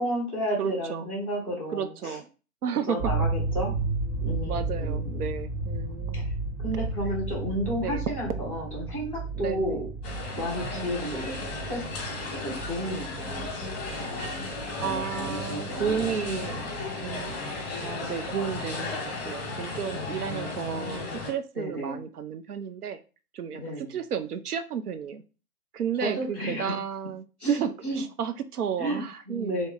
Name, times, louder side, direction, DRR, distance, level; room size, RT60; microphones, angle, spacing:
voice 1, 0.0-2.2 2.9-3.7 4.2-5.2 6.1-6.3 6.6-9.9 10.4-13.6 13.8-14.5 14.8-16.9 19.9-21.2 21.6-22.0 23.5-23.9 26.0-26.8 27.4-28.0 28.8-29.7, equal, 5° right, -8 dB, 0.5 m, -33 dB
voice 2, 0.6-1.1 1.7-2.2 2.6-3.0 4.5-6.3 7.8-8.1 9.3-9.8 10.7-11.2 14.8-16.7 17.0-17.4 17.8-23.0 23.3-25.2 25.7-29.6, right 8 dB, 80° right, 10 dB, 0.6 m, -33 dB
sound 1, 3.0-17.9, right 3 dB, 45° right, 0.7 m, -33 dB
sound 2, 10.0-21.3, left 3 dB, 20° left, 0.9 m, -35 dB
3.0 x 2.1 x 3.7 m, 0.34 s
figure-of-eight pair, 125°, 45 cm